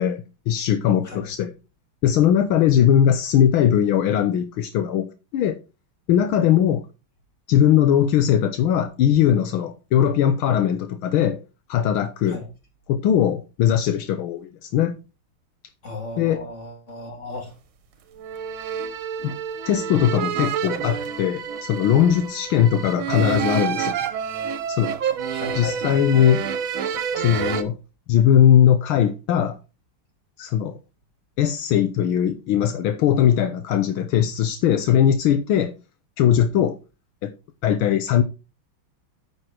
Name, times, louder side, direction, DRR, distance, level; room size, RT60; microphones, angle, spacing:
voice 1, 0.0-1.5 2.0-5.1 5.3-5.6 6.1-6.8 7.5-11.4 11.7-12.4 12.9-15.0 16.2-16.4 19.2-19.3 19.7-24.0 24.7-24.9 25.5-26.4 27.2-27.8 28.1-29.6 30.4-30.8 31.4-35.7 36.2-36.8 37.2-37.3 37.6-38.2, left 9 dB, 80° left, 1.6 m, -19 dB
voice 2, 15.8-17.5 25.3-26.3, left 3 dB, 35° left, 3.7 m, -35 dB
sound 1, 18.2-27.6, right 8 dB, 75° right, 1.8 m, -28 dB
9.2 x 6.6 x 4.4 m
omnidirectional pair, 2.3 m